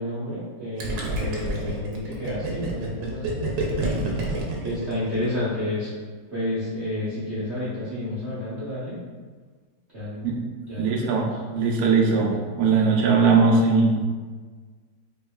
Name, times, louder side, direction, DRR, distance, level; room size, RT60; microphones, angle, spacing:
voice 1, 0.0-4.3 4.6-5.9 6.3-9.0 9.9-10.3 10.7-11.3 12.3-12.4, left 1 dB, 50° right, -11 dB, 0.8 m, -30 dB
Gurgling, 0.8-5.5, right 2 dB, 70° right, 1.2 m, -28 dB
voice 2, 10.8-11.3 11.5-14.0, right 4 dB, 90° right, -1 dB, 0.8 m, -20 dB
4.4 x 3.2 x 2.3 m, 1.5 s
omnidirectional pair, 2.4 m